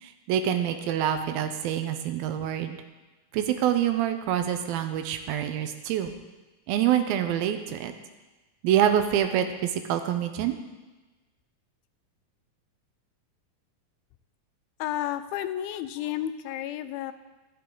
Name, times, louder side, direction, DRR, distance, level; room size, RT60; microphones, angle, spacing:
voice 1, 0.0-2.8 3.3-6.1 6.7-7.9 8.6-10.6, right 10 dB, 85° right, 7 dB, 2.5 m, -26 dB
voice 2, 14.8-17.1, left 12 dB, 85° left, 12 dB, 2.4 m, -31 dB
12.5 x 8.6 x 3.8 m, 1.2 s
omnidirectional pair, 4.2 m